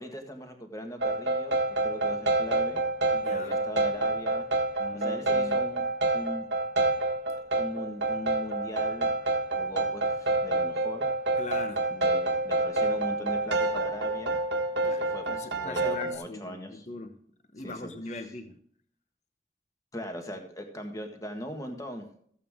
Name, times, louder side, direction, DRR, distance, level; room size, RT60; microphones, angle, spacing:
voice 1, 0.0-2.8 3.3-4.5 4.9-5.8 6.1-6.5 7.3-9.1 9.6-11.1 11.9-14.4 14.8-16.9 17.6-17.9 19.9-22.2, equal, 15° left, 4 dB, 1.6 m, -40 dB
sound 1, 1.0-16.1, right 2 dB, 70° right, 1.5 m, -28 dB
voice 2, 3.1-3.6 4.8-5.6 11.4-11.9 14.8-17.2 17.5-18.6, left 2 dB, 35° left, 8 dB, 0.9 m, -40 dB
14.5 x 8.3 x 3.6 m, 0.62 s
head